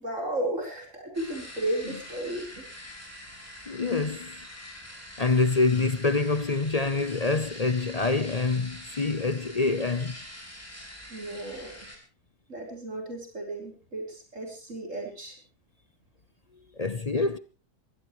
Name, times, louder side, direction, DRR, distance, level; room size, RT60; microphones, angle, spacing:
voice 1, 0.0-2.6 11.1-11.7 12.5-15.3, right 1 dB, 50° right, 5.1 m, -34 dB
sound 1, 1.1-12.0, left 1 dB, 10° left, 4.8 m, -45 dB
voice 2, 3.7-4.4 5.2-10.2 16.8-17.4, left 3 dB, 35° left, 0.6 m, -26 dB
23.0 x 16.5 x 3.2 m
omnidirectional pair, 1.6 m